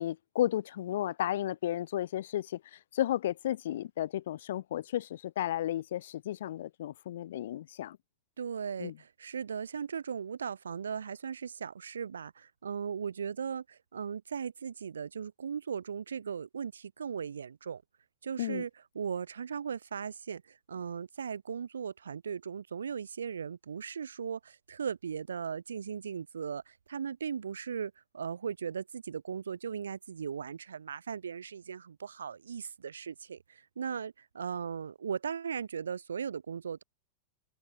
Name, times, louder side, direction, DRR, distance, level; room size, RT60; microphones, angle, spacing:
voice 1, 0.0-8.0 8.8-8.9 18.4-18.6, left 12 dB, 60° left, 5.5 m, -33 dB
voice 2, 8.4-17.8 18.2-36.8, right 7 dB, 70° right, 3.9 m, -38 dB
figure-of-eight pair, 90°, 0 cm